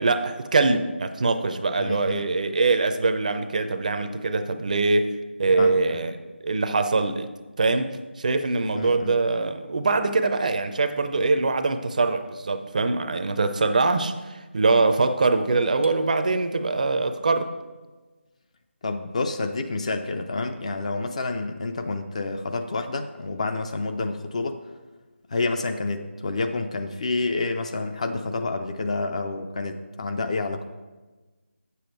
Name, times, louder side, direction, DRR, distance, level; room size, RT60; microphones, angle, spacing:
voice 1, 0.0-5.1 5.4-6.1 6.4-7.3 7.6-17.5, right 3 dB, 40° right, 9 dB, 0.5 m, -23 dB
voice 2, 1.8-2.2 5.5-6.0 8.7-9.1 18.8-24.6 25.3-30.6, left 3 dB, 35° left, 7 dB, 0.5 m, -29 dB
sound 1, 15.8-17.4, left 1 dB, 80° right, 0.8 m, -36 dB
8.7 x 7.0 x 4.5 m, 1.2 s
figure-of-eight pair, 165°, 6 cm